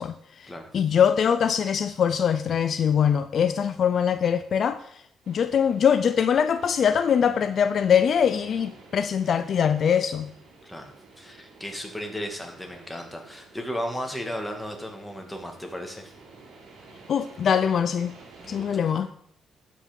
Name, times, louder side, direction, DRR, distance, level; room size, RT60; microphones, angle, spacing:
voice 1, 0.0-10.3 17.1-18.2 18.5-19.1, left 8 dB, 55° left, 0.4 m, -23 dB
sound 1, 5.2-18.7, right 3 dB, 70° right, 3.2 m, -51 dB
voice 2, 11.2-16.1 18.4-18.9, equal, 5° left, 2.2 m, -35 dB
12.0 x 6.0 x 5.3 m
cardioid pair, 90°, 0 cm